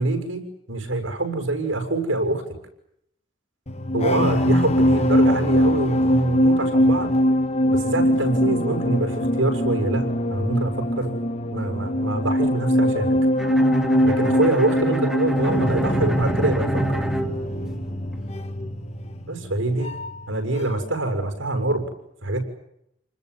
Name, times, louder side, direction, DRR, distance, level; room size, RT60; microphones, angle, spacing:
voice 1, 0.0-2.4 3.9-7.2 7.7-11.1 11.5-13.2 14.0-17.0 19.3-20.0 20.3-21.8 22.2-22.4, right 2 dB, 80° right, 6 dB, 6.9 m, -25 dB
sound 1, 3.7-20.3 20.6-20.9, equal, 35° left, 1.7 m, -22 dB
Bowed string instrument, 13.4-18.2, right 1 dB, ahead, 2.5 m, -27 dB
29.5 x 20.5 x 9.8 m, 0.77 s
head